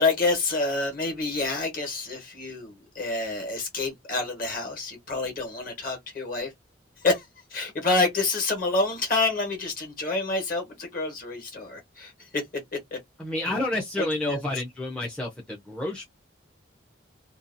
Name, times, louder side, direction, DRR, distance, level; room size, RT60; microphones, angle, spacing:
voice 1, 0.0-6.5 7.0-12.4 12.7-13.0 14.0-14.4, left 3 dB, 45° left, 1.2 m, -28 dB
voice 2, 13.2-16.0, left 1 dB, 5° left, 0.5 m, -30 dB
2.7 x 2.3 x 2.5 m
head